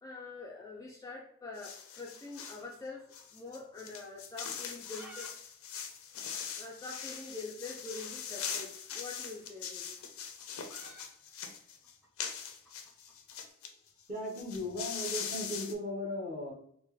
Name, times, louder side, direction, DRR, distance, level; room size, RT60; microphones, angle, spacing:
voice 1, 0.0-3.1 3.3-5.3 6.6-10.0, left 3 dB, 15° left, -2 dB, 0.4 m, -45 dB
sound 1, 1.5-2.6 3.1-13.7 14.0-14.1 14.3-15.7, left 7 dB, 75° left, 0.5 m, -42 dB
sound 2, 2.4-3.7 3.9-4.0 4.6-5.3 5.6-5.7 5.9-6.0 6.6-6.7 7.9-8.1 9.2-13.4, right 1 dB, 5° right, 0.8 m, -55 dB
voice 2, 14.1-16.5, left 1 dB, 30° right, -3 dB, 1.2 m, -37 dB
4.2 x 2.1 x 3.2 m, 0.66 s
head